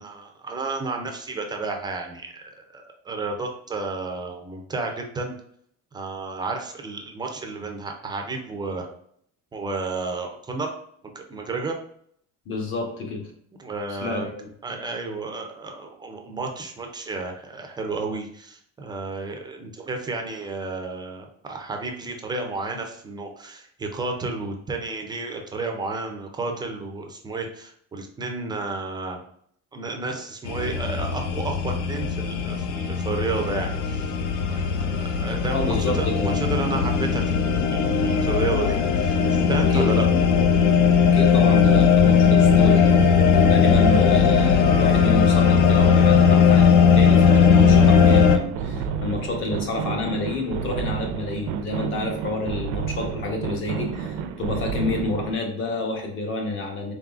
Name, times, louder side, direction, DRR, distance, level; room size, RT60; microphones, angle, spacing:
voice 1, 0.0-5.3 5.9-8.9 9.5-10.7 11.2-11.8 13.6-14.3 14.6-29.2 29.7-34.1 34.5-39.2 39.5-40.1, right 3 dB, 15° right, 3 dB, 0.3 m, -32 dB
voice 2, 12.5-13.3 14.0-14.5 35.5-36.9 38.4-38.5 39.6-40.1 41.1-43.0 43.4-56.9, left 2 dB, 40° left, 2 dB, 0.9 m, -29 dB
sound 1, 30.5-48.4, left 6 dB, 65° left, 0.5 m, -18 dB
sound 2, 47.5-55.4, right 6 dB, 85° right, 0.5 m, -30 dB
3.9 x 3.7 x 2.4 m, 0.65 s
cardioid pair, 165°, 31 cm